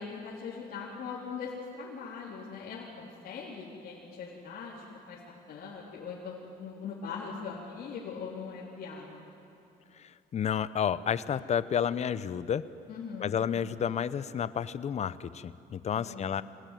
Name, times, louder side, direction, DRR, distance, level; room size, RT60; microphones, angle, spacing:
voice 1, 0.0-5.2 5.5-9.3 12.9-13.4 15.9-16.4, left 5 dB, 60° left, -6 dB, 4.0 m, -41 dB
voice 2, 10.0-12.7 13.2-16.4, left 8 dB, 40° left, 15 dB, 0.8 m, -31 dB
25.5 x 18.0 x 9.3 m, 2.7 s
cardioid pair, 110°, 17 cm